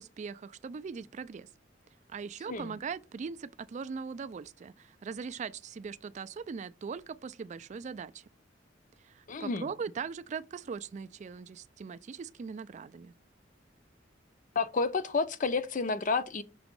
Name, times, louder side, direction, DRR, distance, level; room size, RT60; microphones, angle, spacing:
voice 1, 0.0-1.5 2.1-8.2 9.0-13.1, right 5 dB, 40° right, 0.3 m, -40 dB
voice 2, 9.3-9.7 14.6-16.4, left 4 dB, 45° left, 0.5 m, -30 dB
6.1 x 2.9 x 5.2 m
head